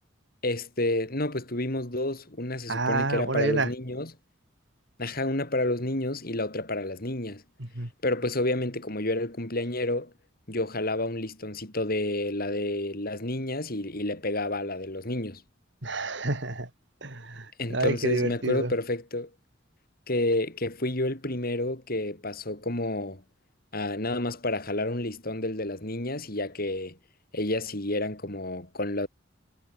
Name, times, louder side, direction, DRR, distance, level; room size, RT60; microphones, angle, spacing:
voice 1, 0.4-4.1 5.0-7.4 8.0-10.1 10.5-15.4 17.6-19.3 20.1-23.2 23.7-27.0 27.3-29.1, left 1 dB, 50° left, 4.9 m, -30 dB
voice 2, 2.7-3.7 7.6-7.9 15.8-16.7 17.0-18.7, right 2 dB, 65° right, 3.6 m, -29 dB
head